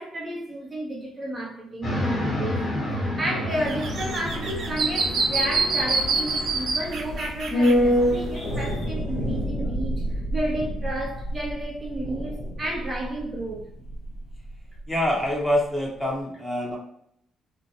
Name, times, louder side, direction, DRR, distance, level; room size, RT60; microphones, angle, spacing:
voice 1, 0.0-2.7 3.2-13.7, right 1 dB, 30° right, 0.7 m, -32 dB
sound 1, 1.8-7.3, left 1 dB, 50° left, 1.3 m, -31 dB
sound 2, 3.5-8.8, right 3 dB, 70° right, 0.6 m, -27 dB
sound 3, 4.2-14.6 14.8-14.9, equal, 85° left, 1.0 m, -28 dB
voice 2, 14.9-16.8, left 1 dB, 15° left, 0.9 m, -25 dB
2.5 x 2.1 x 2.9 m
cardioid pair, 90°, 0 cm